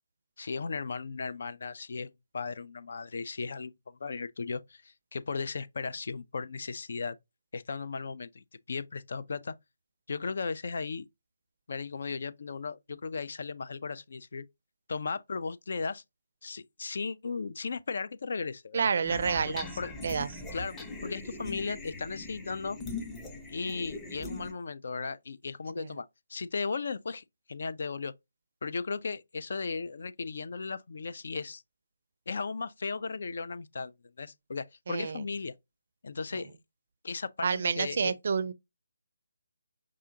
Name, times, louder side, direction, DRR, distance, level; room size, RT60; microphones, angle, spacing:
voice 1, 0.4-7.2 7.5-9.5 10.1-11.1 11.7-14.4 14.9-16.0 16.4-18.9 19.5-19.9 20.5-20.8 21.0-22.8 23.5-28.1 28.6-31.6 32.3-33.9 34.2-35.5 36.0-36.6 37.0-38.1, left 4 dB, 55° left, 0.3 m, -36 dB
voice 2, 18.7-19.7 20.0-20.3 25.8-25.9 34.9-35.3 37.4-38.5, right 5 dB, 50° right, 0.4 m, -29 dB
sound 1, 19.0-24.5, left 2 dB, 10° left, 0.6 m, -41 dB
4.8 x 2.5 x 2.7 m
figure-of-eight pair, 150°, 0 cm